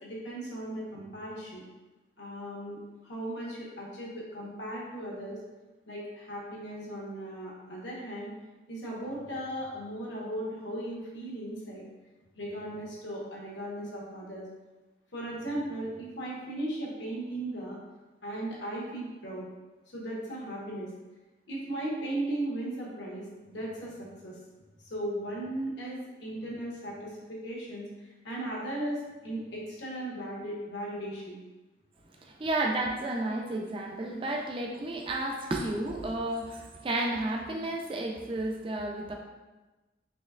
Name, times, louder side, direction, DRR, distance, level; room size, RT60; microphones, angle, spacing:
voice 1, 0.0-1.6 2.2-5.4 5.9-8.3 8.7-11.9 12.3-14.5 15.1-17.8 18.2-19.5 19.9-20.9 21.5-24.4 24.8-27.1 27.4-27.8 28.2-31.4, right 1 dB, 85° left, -4 dB, 1.1 m, -37 dB
voice 2, 32.2-39.1, right 2 dB, 30° right, 1 dB, 0.3 m, -32 dB
4.1 x 3.1 x 2.4 m, 1.1 s
head